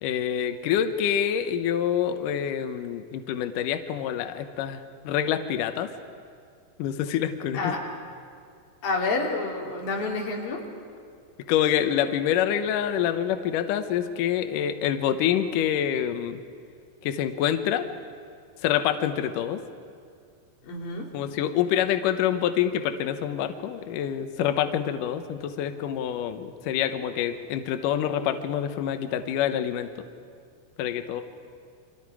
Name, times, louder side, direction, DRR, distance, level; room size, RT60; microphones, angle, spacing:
voice 1, 0.0-5.9 6.8-7.7 11.5-16.4 17.0-17.9 18.6-19.6 21.1-29.9 30.8-31.2, left 10 dB, 85° left, 8 dB, 1.8 m, -26 dB
voice 2, 8.8-10.6 20.6-21.1, left 3 dB, 55° left, -1 dB, 4.3 m, -29 dB
29.5 x 24.5 x 4.9 m, 2.3 s
omnidirectional pair, 5.1 m